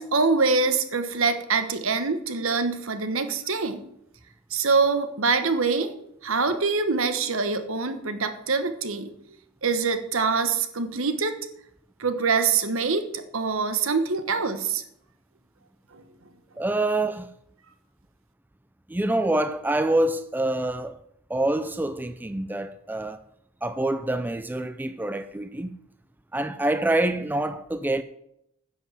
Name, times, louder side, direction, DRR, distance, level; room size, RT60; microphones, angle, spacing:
voice 1, 0.0-3.8 4.5-5.9 6.2-9.1 9.6-11.4 12.0-14.8 15.9-16.0, right 4 dB, 65° right, 1.2 m, -24 dB
voice 2, 16.6-17.3 18.9-21.0 21.3-23.2 23.6-25.8 26.3-28.0, right 1 dB, 10° right, 0.4 m, -26 dB
10.5 x 6.0 x 7.6 m
head